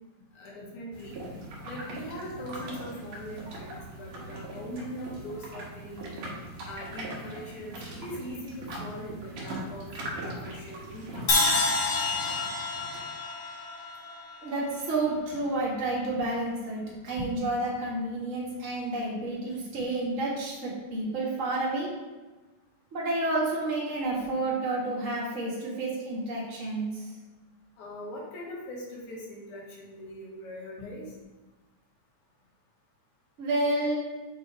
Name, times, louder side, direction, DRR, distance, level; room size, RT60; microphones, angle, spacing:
voice 1, 0.3-1.2 1.6-6.2 6.7-11.6 24.7-24.8 27.8-31.1, equal, 75° left, -4 dB, 2.7 m, -41 dB
sound 1, 0.9-13.1, right 1 dB, 70° right, 2.4 m, -41 dB
Crash cymbal, 11.3-15.3, left 3 dB, 55° left, 1.3 m, -29 dB
voice 2, 14.4-21.9 22.9-27.0 33.4-34.0, right 2 dB, 35° right, -6 dB, 1.4 m, -30 dB
7.4 x 3.2 x 4.2 m, 1.2 s
omnidirectional pair, 3.5 m